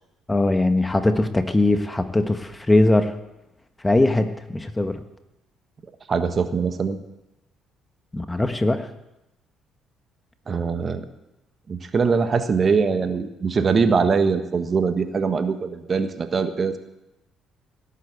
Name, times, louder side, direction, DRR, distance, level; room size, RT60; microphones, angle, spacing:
voice 1, 0.3-3.1 3.8-5.0 8.1-8.9, left 2 dB, 15° left, 9 dB, 1.4 m, -20 dB
voice 2, 6.1-7.0 10.5-11.0 11.7-16.8, right 5 dB, 40° right, 9 dB, 1.4 m, -22 dB
17.5 x 8.4 x 8.3 m, 0.94 s
hypercardioid pair, 50°, 0 cm